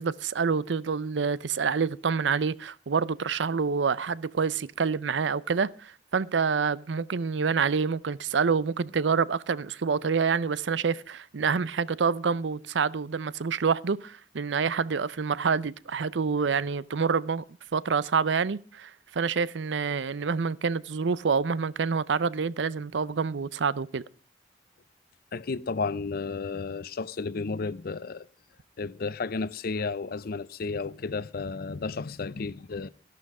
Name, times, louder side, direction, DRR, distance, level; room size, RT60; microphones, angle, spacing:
voice 1, 0.0-17.4 17.7-24.0, right 5 dB, 85° right, 0.6 m, -27 dB
voice 2, 25.3-28.3 28.8-32.9, left 4 dB, 55° left, 0.6 m, -32 dB
13.5 x 12.0 x 4.8 m
head